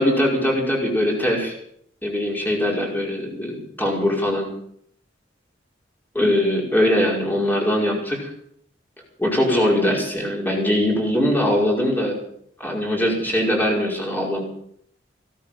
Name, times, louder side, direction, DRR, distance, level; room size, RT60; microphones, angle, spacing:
voice 1, 0.0-1.5 2.0-4.5 6.1-8.3 9.2-12.2 12.6-14.4, left 1 dB, 10° left, -2 dB, 5.4 m, -21 dB
17.0 x 13.5 x 6.0 m, 0.68 s
head